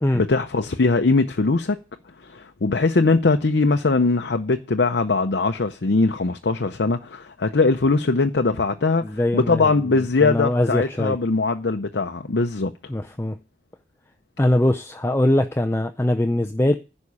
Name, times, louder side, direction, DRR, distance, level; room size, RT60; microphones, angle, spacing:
voice 1, 0.1-1.8 2.2-12.7, left 3 dB, 70° left, 0.7 m, -21 dB
voice 2, 9.0-9.7 10.2-11.2 12.9-13.4 14.4-16.8, left 1 dB, 15° left, 0.5 m, -21 dB
11.0 x 5.4 x 8.5 m
head